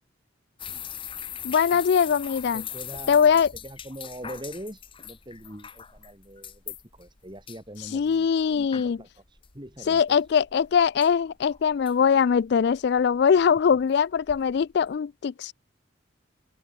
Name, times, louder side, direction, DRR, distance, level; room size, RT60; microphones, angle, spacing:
sound 1, 0.6-15.0, left 9 dB, 25° left, 0.9 m, -41 dB
voice 1, 1.4-2.6 3.1-3.5 7.9-9.0 9.9-15.5, left 7 dB, 60° left, 0.3 m, -22 dB
voice 2, 2.5-10.2, right 1 dB, 25° right, 6.6 m, -43 dB
open air
head